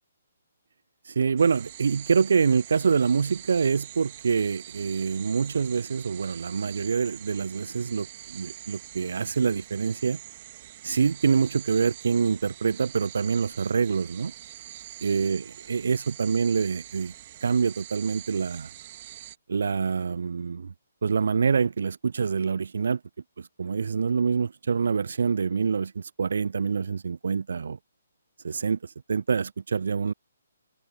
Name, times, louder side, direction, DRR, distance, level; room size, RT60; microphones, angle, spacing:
voice 1, 1.1-10.2 10.8-14.3 15.0-17.1 17.4-18.7 19.5-20.7 21.0-23.0 23.4-27.8 28.4-30.1, right 5 dB, 60° right, 0.3 m, -26 dB
sound 1, 1.4-19.4, right 13 dB, 35° right, 2.0 m, -45 dB
figure-of-eight pair, 135°, 0 cm